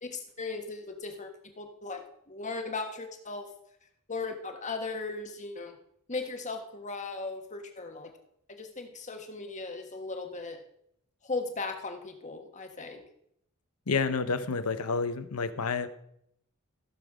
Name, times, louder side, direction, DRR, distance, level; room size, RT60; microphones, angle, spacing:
voice 1, 0.0-3.5 4.1-5.8 6.1-8.1 8.5-10.6 11.2-13.0, left 3 dB, 35° left, 5 dB, 1.5 m, -37 dB
voice 2, 13.9-15.9, left 4 dB, 90° left, 12 dB, 0.9 m, -29 dB
16.0 x 7.3 x 4.9 m, 0.74 s
head